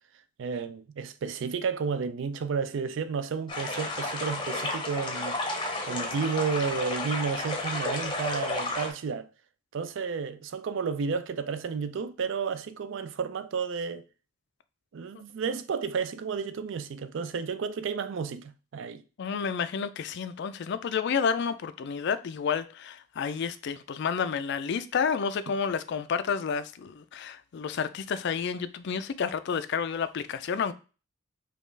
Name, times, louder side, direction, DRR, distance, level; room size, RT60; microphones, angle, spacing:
voice 1, 0.4-9.3 9.7-14.0 14.9-19.0, right 5 dB, 60° right, 0.4 m, -32 dB
sound 1, 3.5-8.9, left 2 dB, 25° left, 0.7 m, -32 dB
voice 2, 19.2-30.7, left 6 dB, 55° left, 0.3 m, -30 dB
5.3 x 2.4 x 3.2 m
head